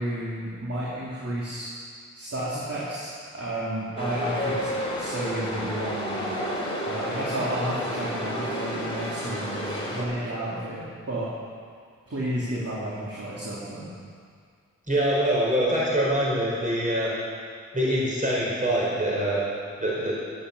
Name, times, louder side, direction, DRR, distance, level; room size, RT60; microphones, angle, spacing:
voice 1, 0.0-1.7 2.1-4.7 4.9-6.4 6.8-11.3 12.1-13.9, right 1 dB, 50° right, -7 dB, 3.4 m, -31 dB
Chatter / Subway metro underground, 4.0-10.0, equal, 20° left, 4.1 m, -31 dB
voice 2, 14.9-17.1 17.7-19.4 19.8-20.2, right 1 dB, 25° right, -6 dB, 4.6 m, -24 dB
12.5 x 10.5 x 7.1 m, 2.1 s
cardioid pair, 50°, 29 cm